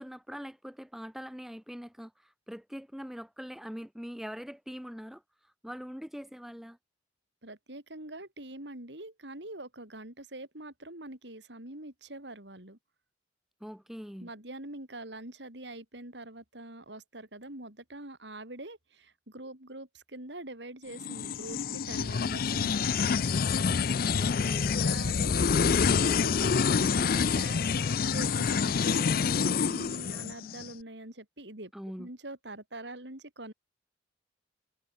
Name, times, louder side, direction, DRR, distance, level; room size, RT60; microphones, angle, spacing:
voice 1, 0.0-6.8 13.6-14.3 24.2-24.8 31.7-32.1, equal, ahead, 0.9 m, -43 dB
voice 2, 7.4-12.8 14.2-23.2 24.7-27.8 28.1-31.7 32.0-33.5, right 1 dB, 70° right, 4.9 m, -44 dB
sound 1, 21.0-30.7, left 6 dB, 50° left, 0.5 m, -27 dB
head